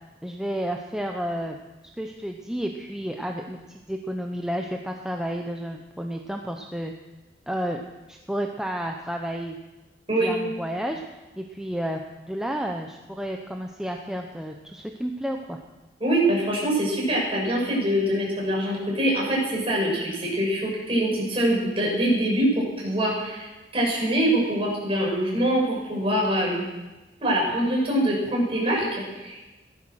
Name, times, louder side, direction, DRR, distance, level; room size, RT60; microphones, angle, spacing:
voice 1, 0.2-1.6 2.0-6.9 7.5-9.6 10.2-11.0 11.4-12.0 12.3-15.6, equal, 5° right, 2 dB, 0.8 m, -31 dB
voice 2, 16.0-23.5 23.7-26.6 27.2-29.4, right 1 dB, 35° right, -4 dB, 6.6 m, -24 dB
16.5 x 13.0 x 6.4 m, 1.1 s
head